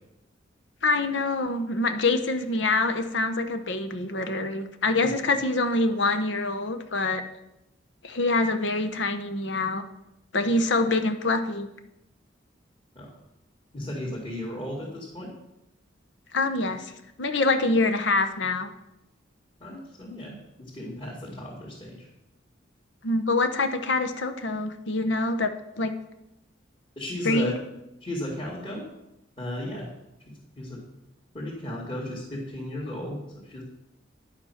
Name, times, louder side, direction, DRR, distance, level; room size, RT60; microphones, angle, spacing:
voice 1, 0.8-7.2 8.0-9.8 10.3-11.7 16.3-16.9 17.2-18.7 23.0-25.9 27.2-27.5, left 2 dB, 75° left, 8 dB, 0.9 m, -25 dB
voice 2, 13.7-15.3 19.6-22.1 27.0-27.6 28.0-28.8 29.4-29.9 30.6-30.8 31.3-33.6, left 1 dB, 25° left, -6 dB, 2.2 m, -35 dB
10.5 x 7.4 x 5.8 m, 0.88 s
head